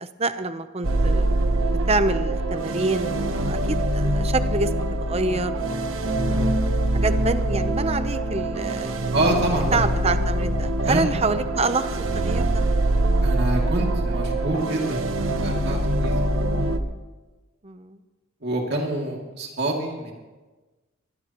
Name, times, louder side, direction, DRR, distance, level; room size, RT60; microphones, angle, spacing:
voice 1, 0.0-1.4 1.9-6.7 6.9-8.9 9.7-12.6 17.6-18.0, right 3 dB, 30° right, 10 dB, 0.8 m, -27 dB
sound 1, 0.8-16.8, right 1 dB, 80° right, 1.2 m, -24 dB
voice 2, 9.1-9.8 10.9-11.1 13.2-16.1 18.4-20.2, right 1 dB, 55° right, -1 dB, 2.6 m, -26 dB
24.0 x 20.0 x 3.1 m, 1.2 s
head